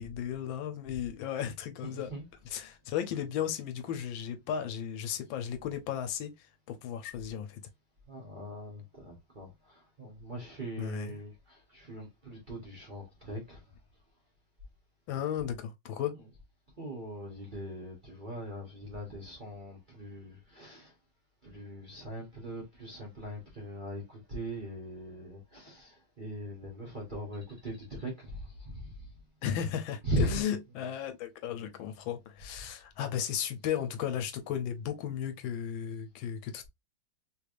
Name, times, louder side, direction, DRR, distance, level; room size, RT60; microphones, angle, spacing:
voice 1, 0.0-2.1 2.5-7.6 10.8-11.2 15.1-16.1 29.4-36.7, left 9 dB, 80° left, 1.4 m, -35 dB
voice 2, 1.8-2.6 8.1-13.6 16.2-16.3 16.8-20.9 21.4-29.1 30.0-30.4, right 1 dB, 35° right, 0.9 m, -40 dB
3.3 x 3.3 x 2.4 m
omnidirectional pair, 2.2 m